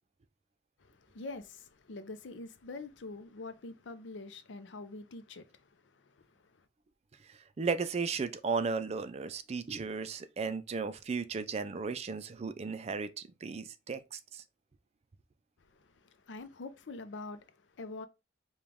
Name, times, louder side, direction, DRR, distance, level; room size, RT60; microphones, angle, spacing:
voice 1, 0.8-6.7 15.6-18.1, left 3 dB, 80° left, 0.6 m, -46 dB
voice 2, 7.6-14.4, right 5 dB, 35° right, 0.4 m, -35 dB
5.0 x 2.3 x 3.5 m
head